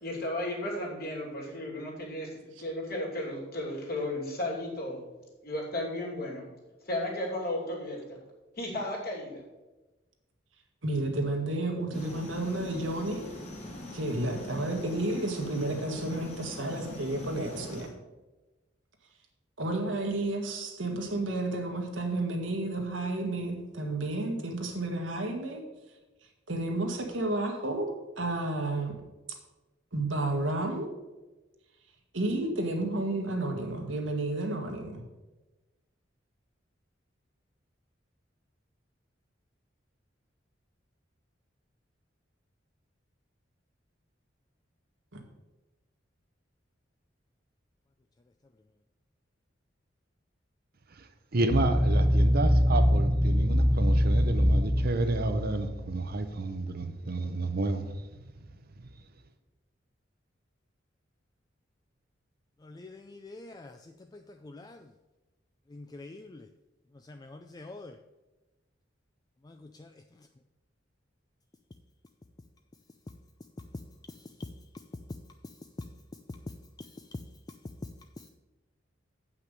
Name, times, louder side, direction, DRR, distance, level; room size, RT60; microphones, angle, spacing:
voice 1, 0.0-2.3 2.6-5.0 5.4-6.4 6.8-8.2 8.6-9.4, left 1 dB, 55° left, 2.8 m, -34 dB
voice 2, 10.8-13.3 13.9-17.9 19.6-25.6 26.5-27.9 28.2-29.0 29.9-30.9 32.1-35.0 45.1-45.2, right 2 dB, 85° right, 1.7 m, -31 dB
sound 1, 11.9-17.9, left 1 dB, 35° left, 2.1 m, -43 dB
voice 3, 51.3-58.0, right 2 dB, 55° right, 0.7 m, -30 dB
sound 2, 51.5-56.2, equal, ahead, 0.9 m, -24 dB
voice 4, 62.6-64.9 65.7-66.5 66.9-68.0 69.4-70.3 74.1-74.5 75.4-75.6 76.3-76.4 76.8-77.2 78.2-78.3, left 2 dB, 20° left, 0.4 m, -46 dB
7.7 x 5.9 x 6.7 m
head